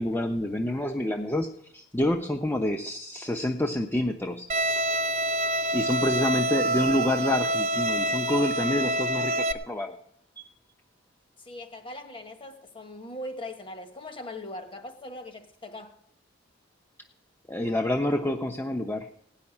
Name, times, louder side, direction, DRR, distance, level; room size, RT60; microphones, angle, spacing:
voice 1, 0.0-4.5 5.7-9.9 10.4-10.5 17.5-19.1, left 1 dB, 10° left, 4 dB, 0.7 m, -28 dB
Bowed string instrument, 4.5-9.5, right 1 dB, 35° right, 0.7 m, -26 dB
voice 2, 11.4-15.9, left 1 dB, 25° left, 6 dB, 1.4 m, -40 dB
17.0 x 5.7 x 9.7 m, 0.75 s
head